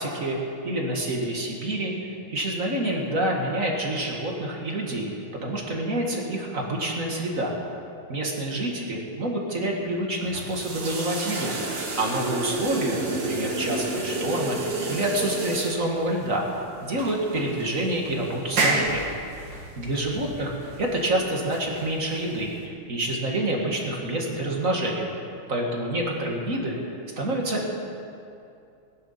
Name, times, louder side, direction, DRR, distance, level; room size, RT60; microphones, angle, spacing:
voice 1, 0.0-5.1 5.4-7.6 8.1-16.5 16.8-19.1 19.8-25.1 25.5-27.7, right 1 dB, 40° right, -1 dB, 2.0 m, -28 dB
sound 1, 10.2-22.6, right 2 dB, 55° right, 2.5 m, -31 dB
18.0 x 10.5 x 5.8 m, 2.6 s
omnidirectional pair, 2.4 m